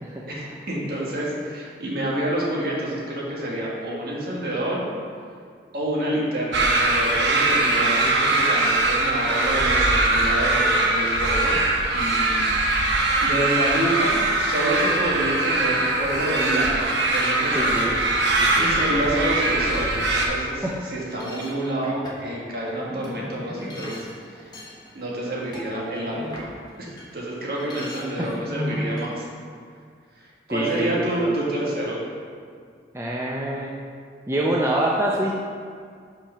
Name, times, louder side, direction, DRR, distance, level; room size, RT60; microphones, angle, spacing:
voice 1, 0.3-4.8 5.7-11.6 11.9-12.5 13.2-17.9 18.3-24.5 24.9-26.5 26.8-26.9 27.1-29.3 30.1-32.0, right 1 dB, 55° right, -5 dB, 1.6 m, -28 dB
sound 1, 6.5-20.3, right 2 dB, 85° right, 0.9 m, -21 dB
voice 2, 17.5-17.9 18.4-19.1 20.6-20.8 28.2-28.3 30.5-31.3 32.9-33.7 34.3-35.3, right 1 dB, 15° right, -4 dB, 0.5 m, -26 dB
sound 2, 21.0-27.1 27.4-29.1, left 1 dB, 25° left, 1.0 m, -37 dB
5.4 x 5.2 x 5.7 m, 2.1 s
head